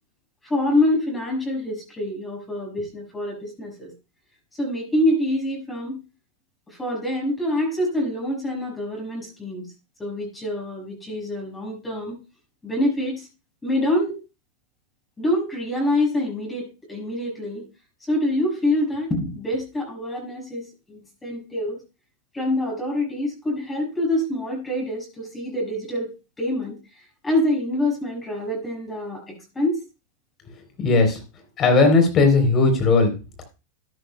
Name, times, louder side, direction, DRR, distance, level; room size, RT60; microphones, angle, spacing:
voice 1, 0.5-3.9 4.5-6.0 6.7-9.7 10.0-12.2 12.6-13.3 13.6-14.2 15.2-17.6 18.1-21.8 22.3-29.8, left 1 dB, 15° left, -1 dB, 5.8 m, -26 dB
voice 2, 30.8-31.2 31.6-33.1, left 3 dB, 35° left, 6 dB, 3.6 m, -17 dB
13.0 x 10.5 x 2.3 m, 0.29 s
hypercardioid pair, 100°, 0 cm